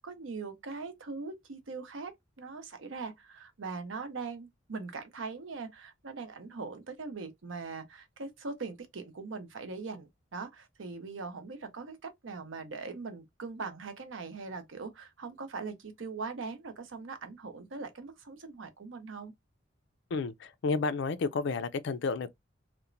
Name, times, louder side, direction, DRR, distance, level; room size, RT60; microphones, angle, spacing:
voice 1, 0.0-19.3, right 4 dB, 85° right, 0.7 m, -41 dB
voice 2, 20.1-22.3, left 4 dB, 65° left, 0.4 m, -31 dB
2.9 x 2.1 x 2.5 m
head